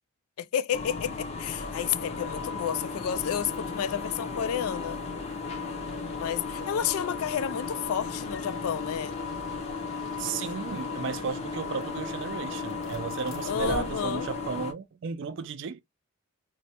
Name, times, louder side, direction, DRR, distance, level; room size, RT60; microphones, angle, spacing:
voice 1, 0.4-5.0 6.2-9.1 13.4-14.3, left 9 dB, 75° left, 0.3 m, -31 dB
sound 1, 0.7-14.7, left 4 dB, 30° left, 0.6 m, -35 dB
sound 2, 2.9-14.5, left 1 dB, 60° left, 1.0 m, -48 dB
voice 2, 10.2-15.8, right 6 dB, 55° right, 0.3 m, -34 dB
3.1 x 2.1 x 2.8 m
head